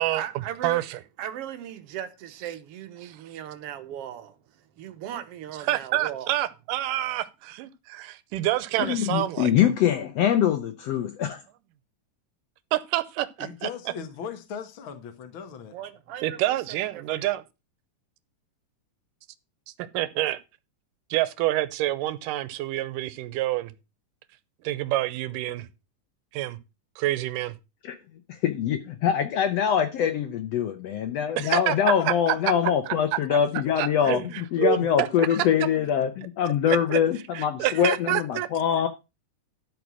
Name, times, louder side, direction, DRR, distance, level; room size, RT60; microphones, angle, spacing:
voice 1, 0.0-0.8 1.2-4.4 4.8-6.3 15.7-16.4 16.7-17.2, right 10 dB, 65° right, 1.5 m, -37 dB
voice 2, 0.6-1.0 5.6-9.5 12.7-13.7 16.2-17.4 19.9-20.4 21.1-23.7 24.6-25.7 26.3-26.6 27.0-27.6 31.4-31.8 32.1-32.4 32.9-33.0 33.3-33.4 33.8-35.4 36.7-37.0 37.3-38.5, right 15 dB, 85° right, 2.3 m, -27 dB
voice 3, 8.8-11.4 27.8-28.0 28.3-38.9, left 9 dB, 75° left, 1.5 m, -24 dB
voice 4, 13.4-15.7 32.0-32.4 34.7-36.1, left 7 dB, 55° left, 1.5 m, -39 dB
12.0 x 4.8 x 6.1 m
omnidirectional pair, 3.8 m